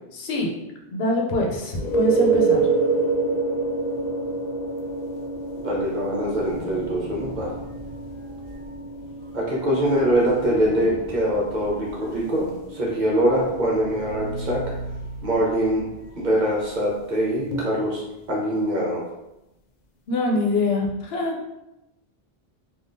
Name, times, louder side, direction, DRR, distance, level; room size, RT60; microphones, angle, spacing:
voice 1, 0.1-0.5 0.9-2.7 20.1-21.4, left 2 dB, 80° left, 0 dB, 0.9 m, -24 dB
sound 1, 1.7-13.2 17.5-17.6, right 3 dB, 55° left, 0.5 m, -27 dB
voice 2, 5.6-7.5 9.3-14.6 15.2-15.8 16.2-19.0, equal, 50° right, -4 dB, 0.9 m, -23 dB
sound 2, 5.6-18.4, right 2 dB, 80° right, 0.9 m, -40 dB
3.3 x 2.4 x 2.6 m, 0.91 s
omnidirectional pair, 1.0 m